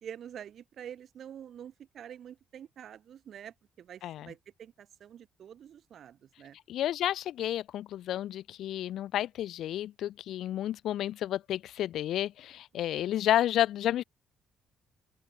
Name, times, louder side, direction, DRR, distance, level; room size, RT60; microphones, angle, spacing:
voice 1, 0.0-6.6 12.7-13.2, right 9 dB, 55° right, 1.5 m, -47 dB
voice 2, 6.7-14.0, left 12 dB, 75° left, 0.4 m, -31 dB
open air
cardioid pair, 130°, 0 cm